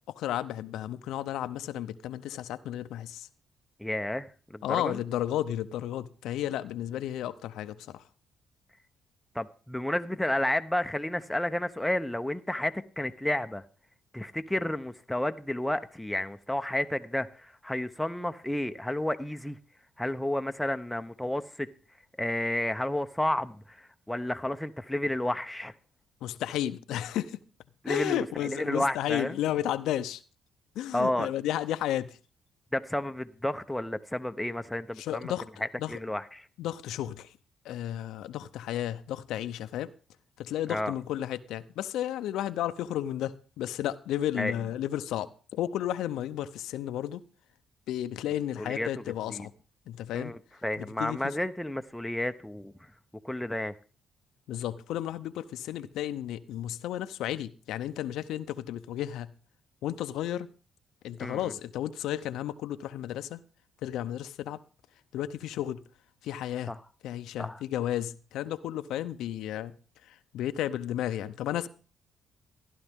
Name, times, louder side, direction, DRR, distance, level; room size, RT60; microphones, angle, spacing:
voice 1, 0.1-3.3 4.6-8.0 26.2-27.4 27.9-30.2 30.8-32.2 35.0-35.5 35.8-35.9 36.6-37.3 37.6-39.9 40.4-47.2 47.9-49.5 49.9-50.3 50.8-51.2 54.5-59.3 59.8-60.5 61.0-63.4 63.8-64.6 65.1-65.8 66.2-66.7 67.0-69.7 70.1-71.7, left 12 dB, 85° left, 0.6 m, -33 dB
voice 2, 3.8-5.0 9.3-13.6 14.1-19.6 20.0-21.7 22.2-25.7 27.8-29.4 30.9-31.3 32.7-35.3 35.6-36.5 40.7-40.9 44.4-44.5 48.6-48.9 49.3-49.5 50.1-52.9 53.2-53.7 61.2-61.5 66.7-66.8 67.4-67.6, left 1 dB, 5° left, 0.8 m, -31 dB
14.5 x 11.0 x 3.6 m
cardioid pair, 90°, 0 cm